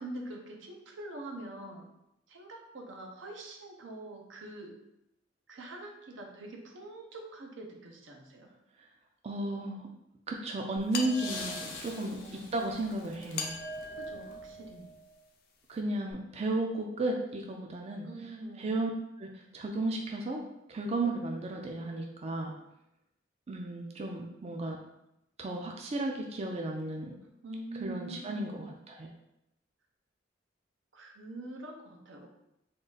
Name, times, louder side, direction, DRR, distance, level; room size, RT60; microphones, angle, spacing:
voice 1, 0.0-1.9 2.3-4.7 5.5-8.5 11.9-12.5 13.9-14.9 18.0-18.7 27.4-28.7 30.9-32.3, right 2 dB, 85° right, 1 dB, 0.7 m, -44 dB
voice 2, 9.2-9.9 10.3-12.2 12.5-13.6 15.7-18.1 18.6-18.9 19.2-20.4 20.7-22.5 23.5-24.8 25.4-27.2 27.8-29.1, right 2 dB, 35° right, 2 dB, 0.4 m, -34 dB
sound 1, 10.8-14.9 16.1-16.2, left 3 dB, 85° left, 0.9 m, -45 dB
sound 2, 10.9-12.0 13.3-15.2, left 3 dB, 55° left, 0.5 m, -40 dB
3.7 x 2.4 x 3.9 m, 0.83 s
head